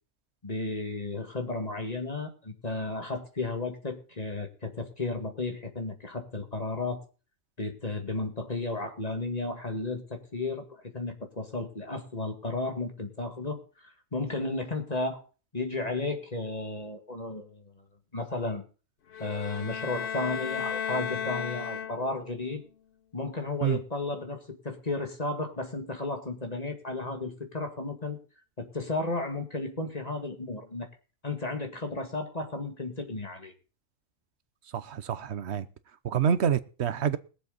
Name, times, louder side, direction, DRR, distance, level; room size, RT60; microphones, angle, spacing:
voice 1, 0.4-7.0 7.6-10.7 10.9-15.2 15.5-17.6 18.1-18.6 19.2-22.6 23.1-28.2 28.6-30.9 31.2-33.5, left 3 dB, 30° left, 2.1 m, -33 dB
sound 1, 19.1-22.3, left 8 dB, 50° left, 0.8 m, -34 dB
voice 2, 34.7-35.7 36.0-37.2, right 8 dB, 60° right, 1.1 m, -27 dB
21.0 x 7.7 x 3.9 m
omnidirectional pair, 1.4 m